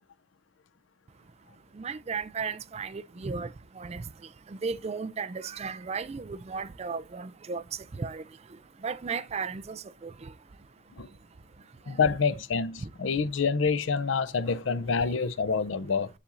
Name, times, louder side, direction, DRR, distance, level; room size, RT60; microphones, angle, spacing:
voice 1, 1.8-4.0 4.6-7.6 7.9-8.2 8.8-10.3 12.8-12.9 15.0-15.1, right 5 dB, 30° right, 0.4 m, -35 dB
voice 2, 11.9-16.1, left 5 dB, 75° left, 0.6 m, -27 dB
7.3 x 6.9 x 2.5 m
head